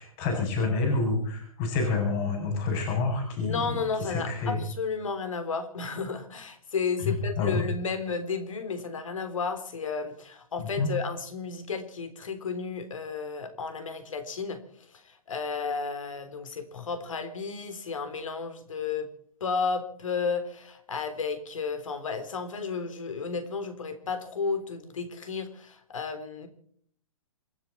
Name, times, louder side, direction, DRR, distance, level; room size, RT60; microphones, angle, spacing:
voice 1, 0.0-3.6 4.0-4.6 7.0-7.6 10.6-10.9, left 3 dB, 35° left, 3 dB, 7.9 m, -28 dB
voice 2, 3.4-19.1 19.4-26.5, left 5 dB, 65° left, 10 dB, 3.6 m, -33 dB
28.0 x 11.0 x 4.4 m, 0.62 s
figure-of-eight pair, 125°, 18 cm